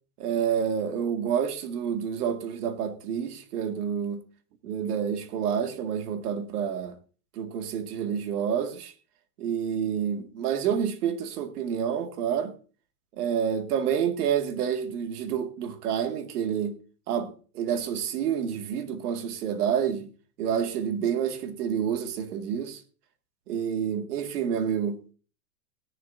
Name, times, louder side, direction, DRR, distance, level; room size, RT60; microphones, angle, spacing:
voice 1, 0.2-4.2 4.6-6.9 7.3-8.9 9.4-12.5 13.2-16.8 17.1-20.1 20.4-22.8 23.5-25.1, right 8 dB, 70° right, 2.1 m, -28 dB
17.5 x 11.0 x 2.6 m
supercardioid pair, 145°, 47 cm